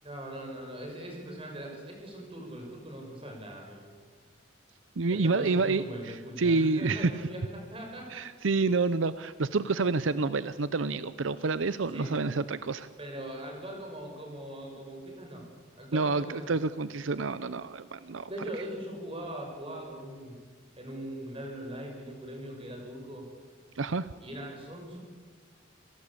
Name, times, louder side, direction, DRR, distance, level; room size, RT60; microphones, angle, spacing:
voice 1, 0.0-3.8 5.1-8.2 11.9-12.2 13.0-15.4 15.8-16.6 18.3-20.4 20.8-23.3 24.2-25.0, right 1 dB, 30° right, 1 dB, 5.9 m, -40 dB
voice 2, 5.0-5.8 6.4-7.1 8.1-12.9 15.9-18.3 23.8-24.1, right 3 dB, 80° right, 14 dB, 0.7 m, -28 dB
27.5 x 17.0 x 8.5 m, 1.5 s
head